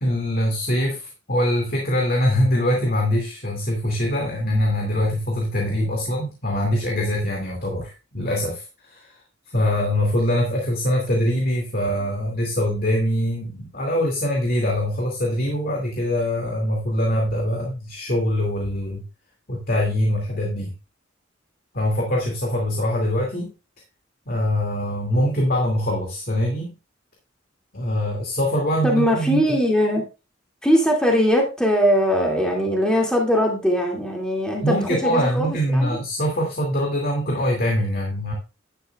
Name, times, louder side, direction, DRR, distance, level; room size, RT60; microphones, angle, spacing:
voice 1, 0.0-9.1 9.5-19.0 19.5-20.7 21.7-23.5 24.3-26.7 27.7-29.6 34.6-38.3, equal, 50° left, 0 dB, 2.5 m, -23 dB
voice 2, 28.8-30.1 30.6-34.8 35.0-35.9, equal, 5° left, 0 dB, 2.4 m, -20 dB
11.0 x 10.0 x 2.4 m, 0.30 s
head